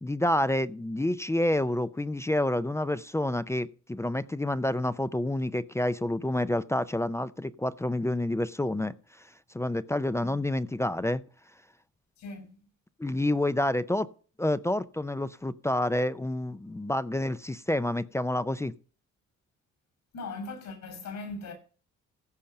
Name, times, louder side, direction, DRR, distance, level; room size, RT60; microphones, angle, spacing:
voice 1, 0.0-8.9 9.5-11.2 13.0-14.1 14.4-18.7, left 1 dB, 10° left, 0.4 m, -28 dB
voice 2, 12.2-12.6 20.1-21.5, left 3 dB, 75° left, 6.6 m, -39 dB
15.5 x 5.2 x 5.7 m
cardioid pair, 90°, 30 cm